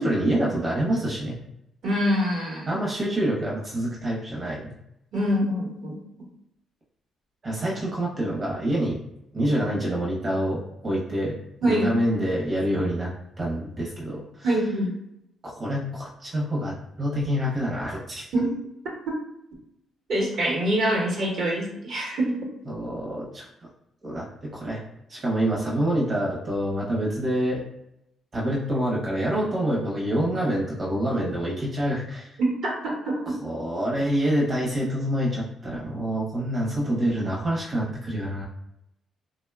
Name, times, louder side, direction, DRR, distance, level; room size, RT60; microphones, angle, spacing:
voice 1, 0.0-1.4 2.7-4.7 7.4-9.0 9.3-11.3 11.6-13.1 13.4-14.2 15.4-18.2 22.7-23.5 24.0-24.3 24.5-24.8 25.1-27.6 28.3-32.3 33.4-38.4, right 1 dB, 40° right, -4 dB, 0.7 m, -26 dB
voice 2, 1.8-2.8 5.1-6.0 11.6-11.9 14.4-14.9 18.3-18.5 20.1-22.4 32.4-33.4, right 1 dB, 70° right, -2 dB, 0.9 m, -25 dB
2.8 x 2.1 x 2.3 m, 0.81 s
cardioid pair, 90°, 0 cm